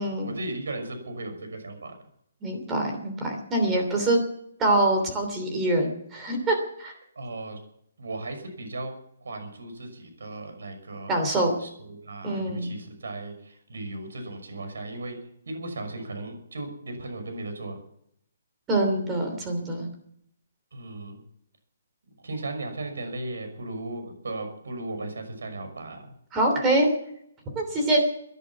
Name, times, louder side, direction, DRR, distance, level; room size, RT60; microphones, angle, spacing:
voice 1, 0.0-1.9 7.2-7.6 8.0-11.2 11.6-15.2 15.5-17.8 20.7-21.2 22.2-26.1, right 2 dB, 90° right, 7 dB, 5.9 m, -36 dB
voice 2, 2.4-4.2 4.6-6.9 11.1-11.6 12.2-12.7 18.7-19.9 26.3-26.9 27.5-28.0, right 1 dB, 10° right, 3 dB, 3.0 m, -24 dB
17.0 x 11.0 x 7.4 m, 0.71 s
hypercardioid pair, 175°, 0 cm